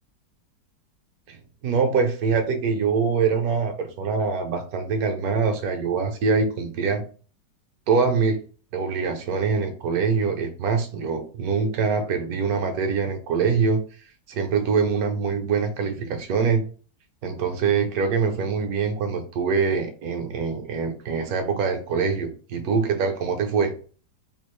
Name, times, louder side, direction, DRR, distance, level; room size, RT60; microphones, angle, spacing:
voice 1, 1.6-7.0 7.9-8.4 8.7-13.8 14.3-16.7 17.2-23.7, right 5 dB, 65° right, 5 dB, 1.0 m, -24 dB
3.6 x 2.4 x 3.1 m, 0.40 s
omnidirectional pair, 1.9 m